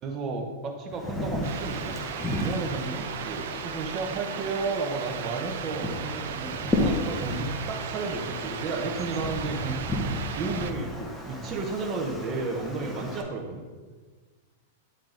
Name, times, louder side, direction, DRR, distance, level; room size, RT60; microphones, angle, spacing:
voice 1, 0.0-2.0 2.4-9.8 10.4-13.7, right 3 dB, 25° right, 2 dB, 0.9 m, -32 dB
Wind, 0.9-13.2, left 1 dB, 5° left, 0.7 m, -33 dB
sound 1, 1.4-10.7, right 8 dB, 70° right, 0.4 m, -37 dB
8.9 x 3.7 x 3.8 m, 1.4 s
supercardioid pair, 160°, 0 cm